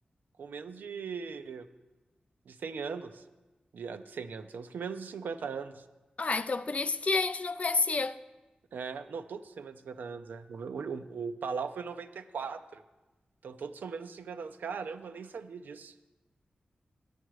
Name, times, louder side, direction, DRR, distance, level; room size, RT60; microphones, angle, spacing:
voice 1, 0.4-1.7 2.5-3.2 3.7-5.8 8.7-12.8 13.4-16.1, right 5 dB, 90° right, 0.5 m, -39 dB
voice 2, 6.2-8.2, left 3 dB, 50° left, 0.4 m, -29 dB
9.9 x 9.1 x 4.7 m
cardioid pair, 50°, 3 cm